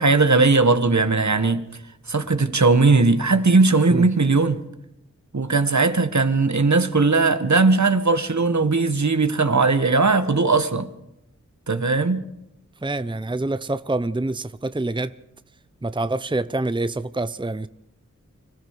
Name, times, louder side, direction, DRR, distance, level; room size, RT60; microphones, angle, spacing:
voice 1, 0.0-1.6 2.1-4.6 5.3-10.9 11.7-12.2, right 3 dB, 65° right, 1.8 m, -18 dB
voice 2, 12.8-15.1 15.8-17.7, right 2 dB, 15° right, 0.7 m, -26 dB
25.5 x 15.5 x 6.8 m
wide cardioid pair, 60°, 30 cm